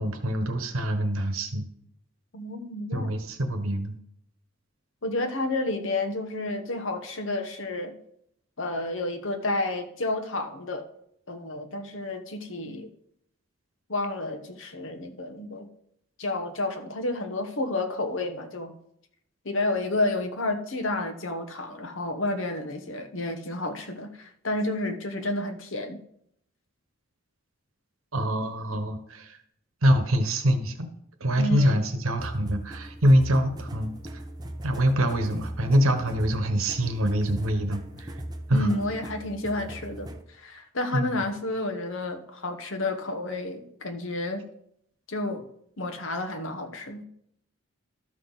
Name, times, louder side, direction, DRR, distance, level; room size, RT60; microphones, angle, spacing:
voice 1, 0.0-1.7 2.9-4.0 28.1-29.4 29.8-30.9 31.2-34.2 34.6-38.1 38.5-38.7 40.9-41.2, equal, 90° right, 7 dB, 1.1 m, -25 dB
voice 2, 2.3-3.1 5.0-7.9 8.6-10.8 11.3-12.9 13.9-15.7 16.2-18.7 19.4-26.0 31.4-31.9 38.5-44.4 45.1-45.4 45.8-47.1, left 2 dB, 65° left, 6 dB, 1.1 m, -30 dB
sound 1, 32.2-40.2, right 1 dB, 20° right, 0.6 m, -39 dB
12.5 x 6.2 x 4.0 m, 0.72 s
head